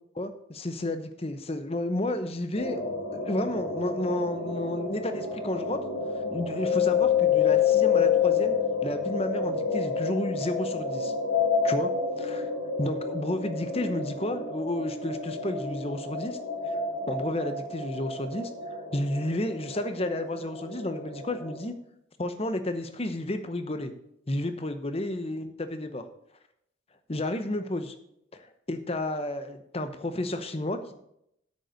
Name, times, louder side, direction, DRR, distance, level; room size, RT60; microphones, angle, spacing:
voice 1, 0.1-5.8 6.3-8.5 8.8-11.1 11.6-11.9 12.2-12.5 12.8-16.4 16.7-16.8 17.1-18.5 18.9-21.7 22.2-23.9 24.3-26.0 27.1-27.9 28.3-30.9, left 1 dB, 30° left, 9 dB, 0.8 m, -31 dB
sound 1, 2.5-21.6, left 6 dB, 75° left, 3.9 m, -29 dB
8.7 x 6.7 x 6.3 m, 0.76 s
head